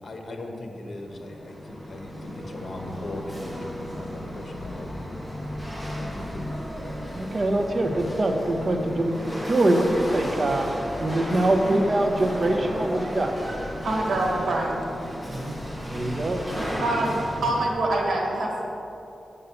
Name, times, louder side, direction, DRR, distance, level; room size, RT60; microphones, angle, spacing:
voice 1, 0.0-5.0 5.9-6.5, left 2 dB, 50° left, 2 dB, 1.2 m, -38 dB
Chatter / Hiss / Rattle, 0.8-17.7, equal, 10° right, 1.3 m, -34 dB
voice 2, 7.1-9.1 9.5-10.7 11.0-13.3 15.3-15.6 15.9-16.4 16.7-16.8, right 1 dB, 45° right, 4 dB, 0.9 m, -24 dB
voice 3, 13.8-14.8 16.8-18.6, right 2 dB, 80° right, 0 dB, 1.6 m, -25 dB
8.0 x 5.5 x 6.9 m, 2.9 s
wide cardioid pair, 105°, 0 cm